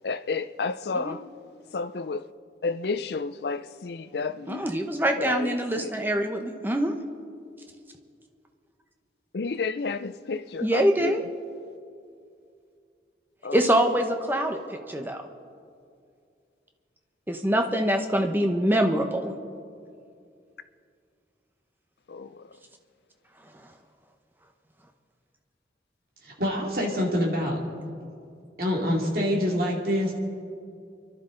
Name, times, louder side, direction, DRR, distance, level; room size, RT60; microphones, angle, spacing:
voice 1, 0.0-1.2 1.7-2.2 2.6-4.6 5.2-5.9 9.3-11.1 13.4-13.6 22.1-22.4, left 4 dB, 65° left, 0.5 m, -31 dB
voice 2, 4.5-6.9 10.6-11.2 13.5-15.2 17.3-19.3, right 1 dB, 10° right, 0.9 m, -24 dB
voice 3, 26.2-27.6 28.6-30.1, equal, 55° right, 2.5 m, -25 dB
29.5 x 11.5 x 3.9 m
head